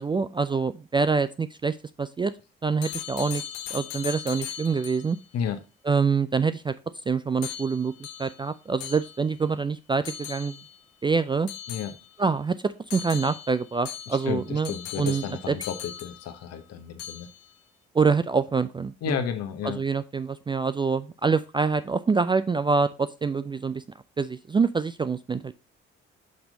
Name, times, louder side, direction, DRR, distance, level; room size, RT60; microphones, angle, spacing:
voice 1, 0.0-2.3 2.6-3.4 3.7-5.2 5.9-6.7 7.1-7.9 8.2-10.6 11.0-11.5 12.2-14.7 15.0-15.5 17.9-19.2 19.6-23.8 24.2-25.5, right 5 dB, 15° right, 12 dB, 0.3 m, -25 dB
sound 1, 2.8-5.2 7.4-9.5 10.0-10.8 11.5-12.4 12.9-16.6 17.0-17.5, left 10 dB, 70° left, 0.7 m, -39 dB
voice 2, 14.1-17.3 19.0-19.8, left 8 dB, 55° left, 9 dB, 1.0 m, -32 dB
5.9 x 5.3 x 3.8 m, 0.30 s
figure-of-eight pair, 40°, 30 cm